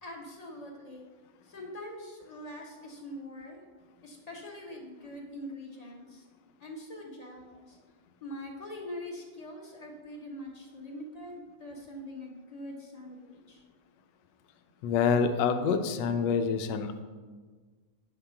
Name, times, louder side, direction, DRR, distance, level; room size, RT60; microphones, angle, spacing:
voice 1, 0.0-1.1 1.5-3.6 4.0-6.2 6.6-7.8 8.2-13.6, left 1 dB, 30° left, 0 dB, 0.8 m, -43 dB
voice 2, 14.8-17.0, left 6 dB, 85° left, 8 dB, 1.3 m, -27 dB
8.7 x 3.7 x 5.7 m, 1.4 s
omnidirectional pair, 1.9 m